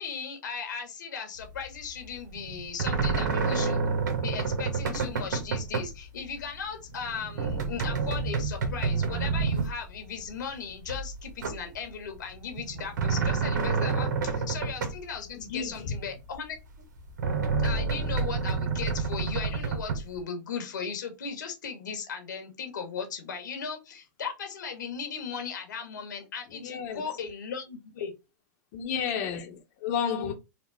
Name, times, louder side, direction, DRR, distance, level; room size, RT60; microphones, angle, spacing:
voice 1, 0.0-3.9 4.2-16.6 17.6-28.1, left 6 dB, 90° left, 1.5 m, -37 dB
sound 1, 1.4-1.7 2.0-6.0 6.2-6.6 6.9-10.4 10.8-11.9 12.3-15.1 15.6-15.7 16.3-16.4 17.0-20.2, right 4 dB, 85° right, 1.0 m, -29 dB
voice 2, 15.3-16.0 26.5-27.2 28.7-30.3, left 7 dB, 55° left, 1.0 m, -32 dB
4.1 x 2.4 x 3.5 m
hypercardioid pair, 120°, 10 cm